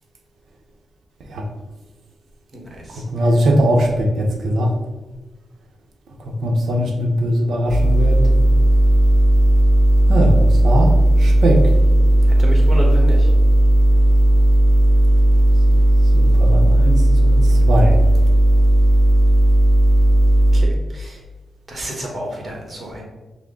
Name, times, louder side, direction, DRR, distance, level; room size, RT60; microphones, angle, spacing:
voice 1, 2.5-3.0 12.4-13.3 20.5-21.2 21.7-23.0, equal, 35° right, -1 dB, 1.2 m, -30 dB
voice 2, 3.1-4.7 6.4-8.2 10.1-10.3 10.6-10.9 11.2-11.6 16.1-16.9 17.2-18.0, equal, 75° right, 2 dB, 0.7 m, -19 dB
sound 1, 7.7-20.7, right 1 dB, 25° left, 0.8 m, -14 dB
6.0 x 2.1 x 3.7 m, 1.1 s
wide cardioid pair, 115°, 0 cm